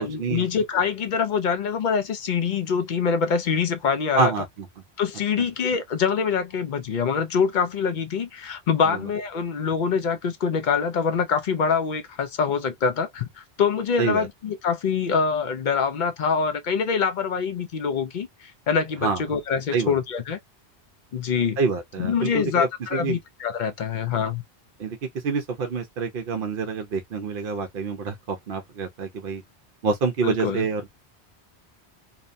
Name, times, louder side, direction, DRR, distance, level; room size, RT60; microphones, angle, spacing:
voice 1, 0.0-4.3 5.0-20.4 21.1-21.6 22.0-24.4 30.2-30.6, left 6 dB, 55° left, 0.6 m, -25 dB
voice 2, 4.1-4.7 8.9-9.0 14.0-14.3 19.0-19.2 19.7-20.0 21.6-23.2 24.8-25.0 25.2-29.4 29.8-30.9, right 4 dB, 60° right, 0.7 m, -27 dB
2.8 x 2.1 x 2.4 m
omnidirectional pair, 1.1 m